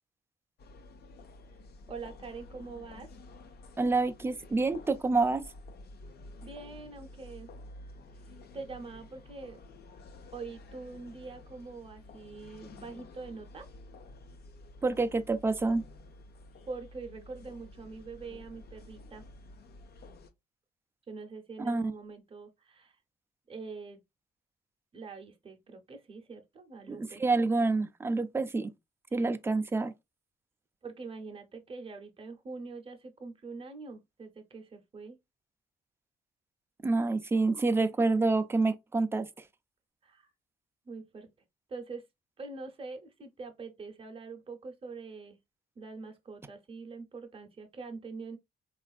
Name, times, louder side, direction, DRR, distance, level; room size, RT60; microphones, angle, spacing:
sound 1, 0.6-20.3, left 2 dB, 55° left, 0.5 m, -51 dB
voice 1, 1.9-3.1 6.4-7.5 8.3-9.6 10.3-13.7 16.7-19.2 21.1-23.0 23.5-24.0 24.9-27.2 30.8-35.2 40.0-40.3 40.8-41.3 41.7-42.1 42.4-45.4 45.8-48.4, right 4 dB, 30° right, 0.7 m, -44 dB
voice 2, 3.8-5.4 14.8-15.8 21.6-21.9 26.9-28.7 29.1-29.9 36.8-39.3, right 3 dB, 10° right, 0.3 m, -27 dB
3.3 x 2.4 x 2.3 m
cardioid pair, 90°, 20 cm